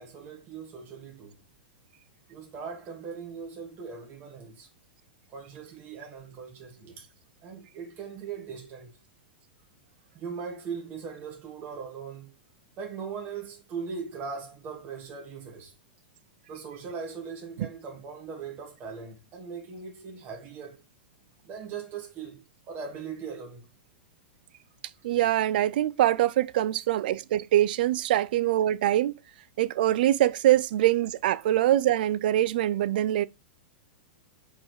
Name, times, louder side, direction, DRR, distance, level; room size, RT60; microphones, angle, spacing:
voice 1, 0.0-1.4 2.3-4.7 5.3-7.1 7.4-9.0 10.1-12.3 12.8-15.7 16.5-20.8 21.4-23.7 28.1-28.3, right 6 dB, 35° right, 2.4 m, -40 dB
voice 2, 25.0-29.2 29.6-33.3, right 13 dB, 65° right, 0.5 m, -24 dB
4.8 x 4.6 x 4.6 m
hypercardioid pair, 105°, 5 cm